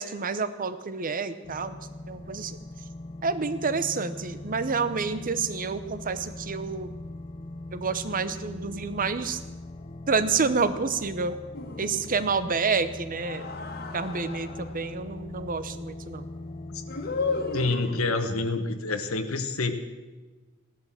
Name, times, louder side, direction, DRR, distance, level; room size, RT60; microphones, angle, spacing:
voice 1, 0.0-1.8 2.1-2.6 3.2-6.9 7.7-9.4 10.1-11.4 11.8-13.5 13.9-16.3, right 4 dB, 40° right, 12 dB, 0.9 m, -28 dB
sound 1, 1.4-17.7, left 2 dB, 30° left, 0.6 m, -41 dB
sound 2, 11.5-12.4 13.1-14.9 16.9-18.4, left 4 dB, 45° left, 1.8 m, -34 dB
voice 2, 17.5-19.7, left 3 dB, 80° left, 6 dB, 1.3 m, -27 dB
16.5 x 11.5 x 7.6 m, 1.3 s
head